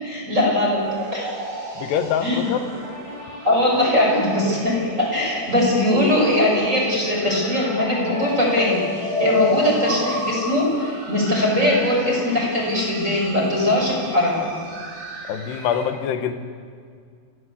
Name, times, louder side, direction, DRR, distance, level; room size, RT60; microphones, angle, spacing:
voice 1, 0.0-0.8 1.1-1.3 2.2-2.4 3.4-14.5, left 1 dB, 15° right, -3 dB, 7.1 m, -20 dB
sound 1, 0.8-15.8, left 2 dB, 60° right, 8.7 m, -31 dB
voice 2, 1.8-2.6 15.3-16.3, left 8 dB, 70° left, 8 dB, 3.2 m, -24 dB
29.5 x 17.0 x 8.4 m, 2.1 s
omnidirectional pair, 5.4 m